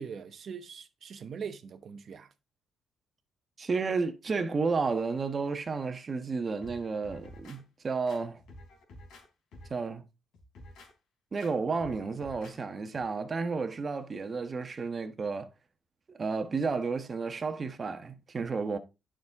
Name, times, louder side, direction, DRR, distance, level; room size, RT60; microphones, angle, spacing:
voice 1, 0.0-2.3, right 6 dB, 55° right, 0.9 m, -41 dB
voice 2, 3.6-8.4 9.7-10.0 11.3-15.5 16.1-18.8, right 4 dB, 35° right, 1.2 m, -32 dB
sound 1, 6.6-7.6 8.1-9.3 9.5-9.9 10.3-10.9 11.4-11.5 11.8-12.6 12.9-13.0, left 1 dB, 80° left, 3.6 m, -50 dB
9.5 x 6.3 x 3.5 m
cardioid pair, 90°, 0 cm